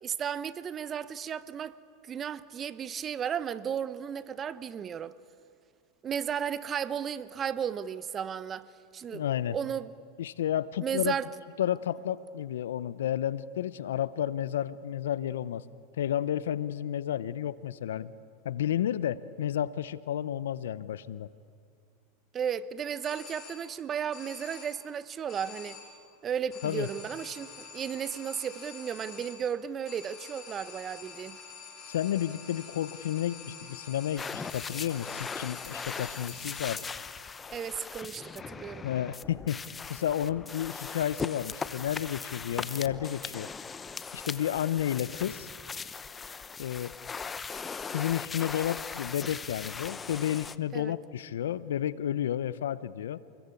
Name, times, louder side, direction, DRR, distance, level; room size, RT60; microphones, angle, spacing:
voice 1, 0.0-5.1 6.0-8.7 8.9-9.9 10.8-11.3 22.3-25.8 26.2-31.4 37.5-38.9 50.7-50.9, right 8 dB, 30° right, 1.0 m, -34 dB
voice 2, 9.1-9.6 10.2-11.1 11.6-15.6 16.0-18.1 18.4-21.3 26.6-26.9 31.8-36.9 38.8-39.6 39.9-43.5 44.1-45.5 46.6-46.9 47.9-53.2, left 11 dB, 80° left, 0.8 m, -31 dB
sound 1, 23.0-23.8 24.1-24.9 25.3-26.1 26.5-37.0, left 6 dB, 40° left, 5.5 m, -47 dB
sound 2, 34.2-50.6, left 5 dB, 20° left, 0.9 m, -39 dB
28.0 x 21.0 x 8.5 m
hypercardioid pair, 100°, 0 cm